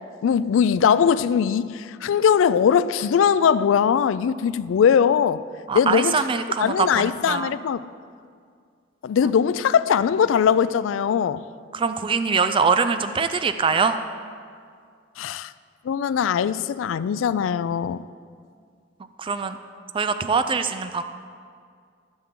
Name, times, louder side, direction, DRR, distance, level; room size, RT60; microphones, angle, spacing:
voice 1, 0.2-5.4 5.7-6.2 6.6-7.9 9.0-11.4 15.2-15.5 15.8-18.0, left 7 dB, 80° left, 0.3 m, -20 dB
voice 2, 5.7-7.5 11.7-14.0 19.2-19.6 19.9-21.0, right 5 dB, 25° right, 0.3 m, -23 dB
14.5 x 7.1 x 3.7 m
head